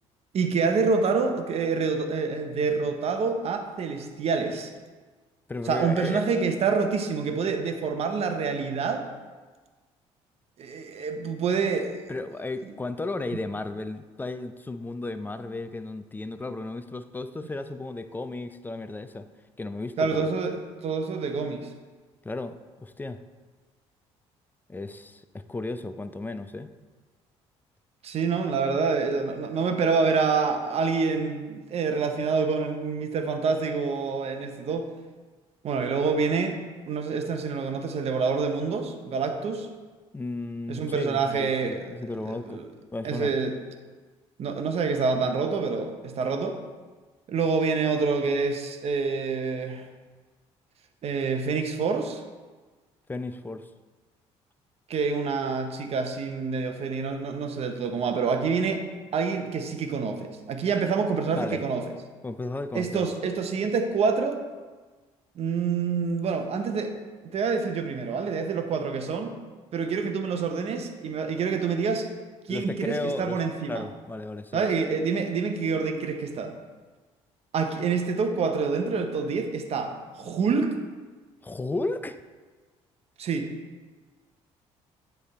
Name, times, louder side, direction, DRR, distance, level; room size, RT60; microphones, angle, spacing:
voice 1, 0.3-4.7 5.6-9.1 10.6-11.9 20.0-21.7 28.0-34.9 35.6-36.6 36.9-39.7 40.7-41.9 42.3-42.7 43.0-43.5 44.4-46.6 47.3-49.9 51.0-52.2 54.9-58.8 59.1-61.8 62.7-64.4 65.4-66.9 67.3-69.4 69.7-72.1 72.5-73.8 74.5-76.5 77.5-80.8 83.2-83.5, right 5 dB, 55° right, 6 dB, 0.8 m, -27 dB
voice 2, 5.5-6.2 12.1-19.3 19.6-20.3 22.2-23.2 24.7-26.7 40.1-42.6 42.9-43.3 53.1-53.7 61.4-61.6 62.2-63.1 72.5-73.4 73.7-74.6 81.4-82.2, left 2 dB, 15° left, 10 dB, 0.4 m, -34 dB
9.1 x 3.4 x 4.2 m, 1.4 s
supercardioid pair, 75°, 13 cm